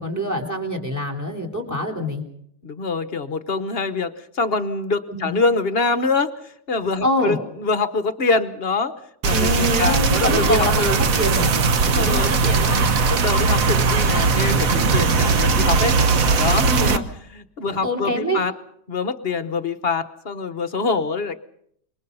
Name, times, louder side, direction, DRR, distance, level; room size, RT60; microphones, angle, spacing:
voice 1, 0.0-2.2 5.1-5.3 7.0-7.4 9.3-11.5 11.8-12.9 16.6-17.0 17.6-18.4, equal, 10° right, 3 dB, 3.7 m, -25 dB
voice 2, 2.6-8.9 9.2-11.0 11.9-12.4 13.1-16.0 16.4-17.0 17.3-18.5 18.9-21.4, left 4 dB, 40° left, 12 dB, 1.1 m, -24 dB
sound 1, 9.2-17.0, right 4 dB, 55° right, 1.5 m, -19 dB
26.5 x 23.0 x 5.5 m, 0.71 s
omnidirectional pair, 1.8 m